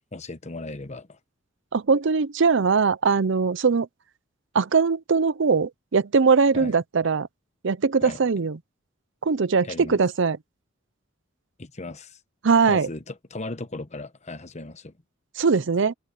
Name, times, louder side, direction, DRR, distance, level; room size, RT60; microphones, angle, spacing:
voice 1, 0.1-1.2 6.5-6.7 8.0-8.2 9.6-10.0 11.6-12.2 12.7-14.9, left 2 dB, 35° left, 1.1 m, -37 dB
voice 2, 1.7-3.9 4.5-7.3 7.6-8.6 9.2-10.4 12.4-12.9 15.4-15.9, right 5 dB, 65° right, 0.6 m, -21 dB
head